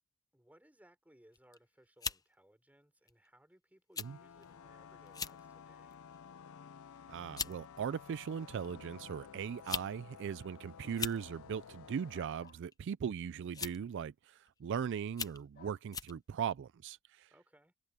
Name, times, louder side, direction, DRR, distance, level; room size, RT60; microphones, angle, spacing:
voice 1, 0.3-6.1 17.3-17.7, right 1 dB, 5° right, 4.3 m, -65 dB
sound 1, 1.3-1.6 2.0-2.2 3.1-3.3 3.9-4.1 4.4-4.5 5.1-5.4 5.9-6.2 7.0-7.1 7.4-7.6 8.6-8.7 9.5-9.9 10.2-10.3 10.8-11.2 12.4-12.7 13.5-13.9 14.5-14.6 15.1-15.4 15.9-16.1, left 5 dB, 15° left, 0.7 m, -39 dB
sound 2, 4.0-12.3, left 7 dB, 70° left, 0.5 m, -53 dB
voice 2, 7.1-17.3, right 7 dB, 55° right, 0.3 m, -39 dB
sound 3, 12.1-12.6 13.5-13.8 15.5-15.8, left 5 dB, 45° left, 3.3 m, -59 dB
head